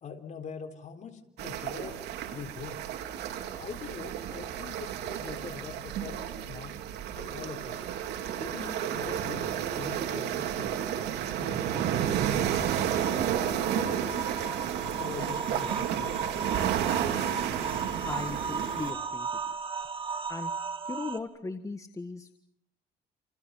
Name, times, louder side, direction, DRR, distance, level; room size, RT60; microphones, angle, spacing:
voice 1, 0.0-2.0 2.3-2.8 3.6-6.7 7.2-7.8 8.4-10.8 11.4-11.9 13.7-14.1 14.8-16.1, left 6 dB, 45° left, 5 dB, 3.8 m, -43 dB
sound 1, 1.4-18.9, right 10 dB, 80° right, 3.3 m, -32 dB
sound 2, 11.8-21.2, right 5 dB, 30° right, 2.1 m, -36 dB
voice 2, 18.0-19.3 20.3-20.5 20.9-22.4, left 3 dB, 20° left, 7 dB, 1.8 m, -38 dB
29.0 x 28.5 x 5.8 m, 0.73 s
cardioid pair, 110°, 17 cm